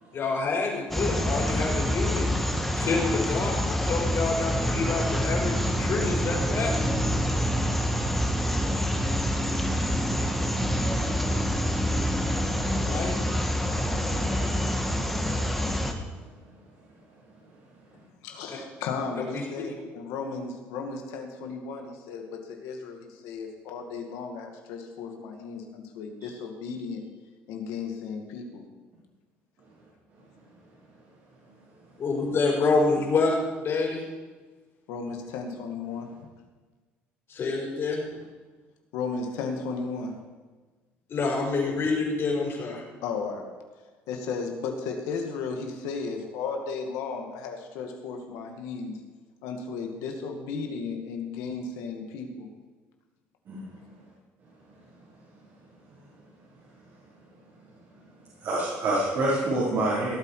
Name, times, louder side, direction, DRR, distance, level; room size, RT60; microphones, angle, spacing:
voice 1, 0.1-2.3 2.8-6.9 12.8-13.1 19.3-19.4 32.0-33.3 33.6-34.0 37.3-38.0 41.1-42.8, left 3 dB, 50° left, -2 dB, 5.0 m, -27 dB
sound 1, 0.9-15.9, equal, 5° left, 1.7 m, -26 dB
voice 2, 18.2-27.0 27.5-28.6 34.9-36.1 38.9-40.1 43.0-43.5 44.1-49.0 49.4-52.5, left 5 dB, 80° left, 3 dB, 2.1 m, -34 dB
voice 3, 58.4-60.1, right 2 dB, 60° right, -8 dB, 4.8 m, -26 dB
17.5 x 8.2 x 4.9 m, 1.3 s
supercardioid pair, 85°, 5 cm